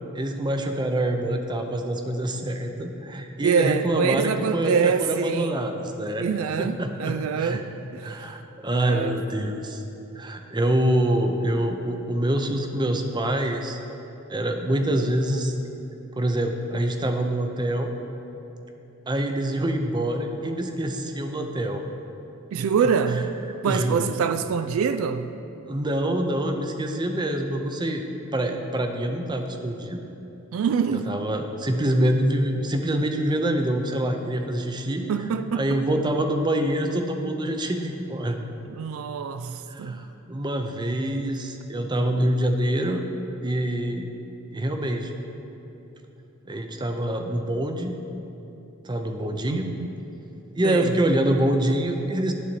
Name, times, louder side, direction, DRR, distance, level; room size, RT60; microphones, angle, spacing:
voice 1, 0.1-6.3 6.6-7.6 8.0-9.8 10.2-13.8 14.3-15.5 16.2-17.9 19.1-21.8 22.8-23.2 23.6-24.2 25.7-28.0 28.3-30.0 30.9-35.1 35.5-38.4 39.7-43.0 43.4-44.1 44.5-45.1 46.5-48.0 48.8-49.7 50.5-52.3, right 1 dB, 20° right, 0.6 m, -25 dB
voice 2, 3.4-5.5 6.2-8.3 8.7-9.2 22.5-23.3 23.6-25.3 30.5-31.2 35.1-35.7 38.7-40.0 49.5-49.9 50.6-50.9, right 6 dB, 75° right, 0.3 m, -25 dB
11.5 x 4.1 x 7.6 m
head